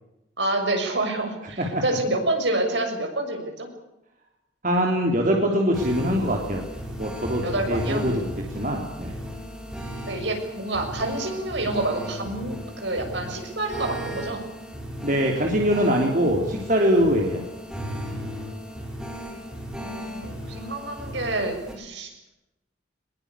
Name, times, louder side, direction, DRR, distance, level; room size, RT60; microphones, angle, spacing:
voice 1, 0.4-3.7 7.4-8.0 10.1-14.5 20.2-22.1, right 2 dB, 65° right, 4 dB, 6.5 m, -28 dB
voice 2, 4.6-6.6 7.0-8.3 8.5-9.1 15.0-17.4, equal, 40° right, 0 dB, 3.4 m, -23 dB
sound 1, 5.7-21.7, equal, 5° right, 5.1 m, -36 dB
22.5 x 21.5 x 8.4 m, 0.91 s
head